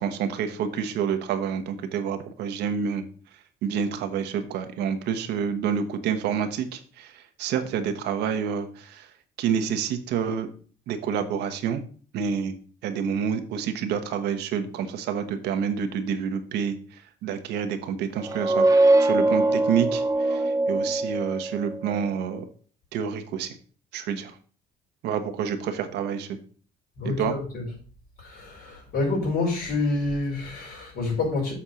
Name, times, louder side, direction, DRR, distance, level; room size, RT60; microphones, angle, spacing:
voice 1, 0.0-3.1 3.6-9.1 9.4-10.5 10.9-11.8 12.1-18.6 19.0-22.4 22.9-23.5 23.9-24.3 25.0-26.4 27.0-27.3, right 7 dB, 80° right, 1.2 m, -28 dB
sound 1, 18.2-21.8, right 2 dB, 20° right, 0.8 m, -22 dB
voice 2, 27.0-27.6 28.2-31.5, left 3 dB, 60° left, 4.8 m, -27 dB
7.3 x 4.3 x 6.3 m
cardioid pair, 110°, 17 cm